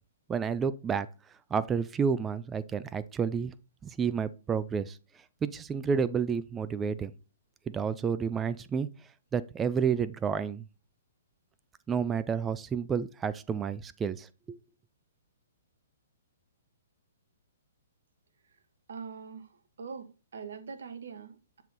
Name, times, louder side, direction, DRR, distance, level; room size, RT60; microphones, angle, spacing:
voice 1, 0.3-1.1 1.5-3.5 3.8-5.0 5.4-7.1 7.7-8.9 9.3-10.6 11.9-14.6, right 6 dB, 15° right, 0.3 m, -30 dB
voice 2, 18.9-21.6, right 6 dB, 65° right, 0.9 m, -43 dB
7.3 x 3.7 x 3.9 m
figure-of-eight pair, 120°, 0 cm